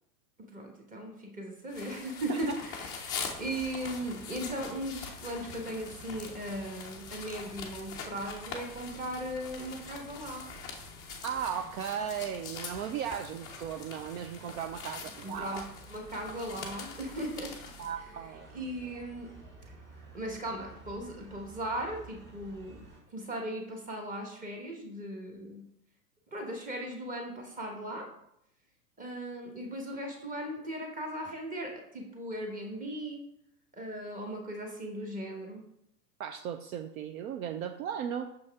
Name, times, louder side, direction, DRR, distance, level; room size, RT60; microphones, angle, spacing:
voice 1, 0.5-10.4 15.2-15.6 15.9-17.5 18.5-19.3 20.1-22.8 23.1-25.6 26.3-28.1 29.0-33.2 33.7-35.6, right 1 dB, 15° right, 2 dB, 1.2 m, -38 dB
sound 1, 1.7-17.9, left 6 dB, 10° left, 0.3 m, -44 dB
sound 2, 3.1-23.0, right 2 dB, 35° right, 2.3 m, -52 dB
voice 2, 11.2-15.6 17.8-18.5 36.2-38.3, right 8 dB, 60° right, 8 dB, 0.5 m, -36 dB
6.1 x 5.3 x 3.5 m, 0.77 s
hypercardioid pair, 120°, 48 cm